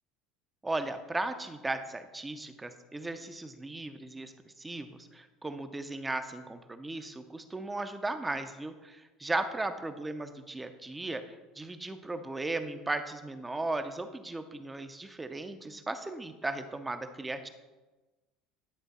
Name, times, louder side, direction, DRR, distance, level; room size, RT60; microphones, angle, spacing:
voice 1, 0.6-4.3 4.6-11.2 11.6-17.5, right 2 dB, 10° right, 9 dB, 0.4 m, -36 dB
10.5 x 3.5 x 4.0 m, 1.2 s
cardioid pair, 140°, 0 cm